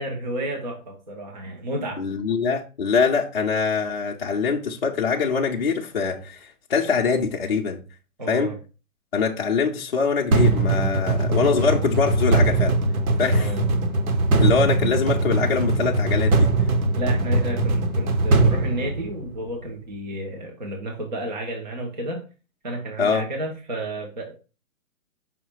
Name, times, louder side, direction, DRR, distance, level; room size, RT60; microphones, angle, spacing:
voice 1, 0.0-2.0 8.2-8.6 13.3-13.6 16.9-22.2 22.6-24.3, right 1 dB, 35° right, 0.7 m, -31 dB
voice 2, 2.0-7.8 8.3-8.5 9.1-12.8 13.2-13.5 14.4-16.5 23.0-23.3, left 5 dB, 45° left, 0.5 m, -23 dB
sound 1, 10.3-19.5, right 2 dB, 90° right, 1.1 m, -21 dB
5.6 x 2.1 x 4.4 m
hypercardioid pair, 180°, 42 cm